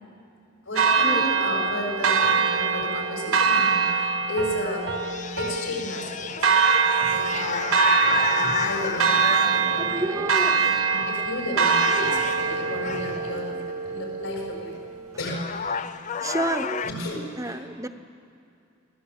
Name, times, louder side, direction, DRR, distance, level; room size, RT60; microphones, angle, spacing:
voice 1, 0.7-4.9 5.4-6.5 7.1-10.2 10.5-14.7 15.2-15.9 16.8-17.7, left 1 dB, 75° left, -1 dB, 7.2 m, -33 dB
Church bell, 0.8-14.8, right 5 dB, 75° right, 1.4 m, -24 dB
Piano, 4.4-6.9, right 2 dB, 50° right, 1.0 m, -36 dB
sound 1, 4.5-10.1 10.9-11.2 11.5-13.4 14.8-14.9 15.2-16.9, left 6 dB, 35° left, 0.5 m, -31 dB
voice 2, 9.8-10.8 12.0-13.1 16.0-17.1 17.4-17.9, right 2 dB, 15° right, 9 dB, 0.9 m, -32 dB
28.0 x 17.5 x 8.8 m, 2.6 s
head